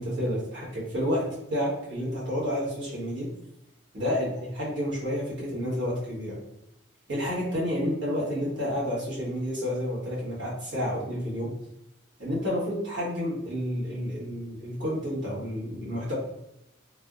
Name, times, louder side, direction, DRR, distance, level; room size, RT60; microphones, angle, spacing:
voice 1, 0.0-3.3 3.9-6.4 7.1-11.5 12.2-16.1, equal, 65° right, -7 dB, 1.3 m, -30 dB
3.3 x 2.1 x 2.4 m, 0.86 s
head